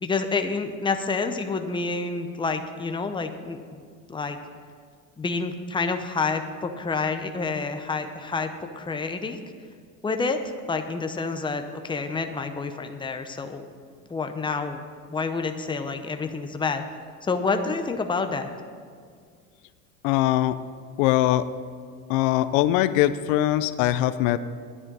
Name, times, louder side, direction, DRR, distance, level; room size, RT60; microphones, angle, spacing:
voice 1, 0.0-3.8 4.1-4.4 5.2-9.4 10.0-10.4 10.7-13.6 14.1-14.8 15.1-16.8 17.2-18.5, left 4 dB, 10° left, 6 dB, 0.8 m, -28 dB
voice 2, 20.0-20.6 21.0-21.4 22.1-24.4, left 14 dB, 80° left, 14 dB, 0.6 m, -21 dB
10.0 x 9.8 x 5.4 m, 2.1 s
supercardioid pair, 105°, 39 cm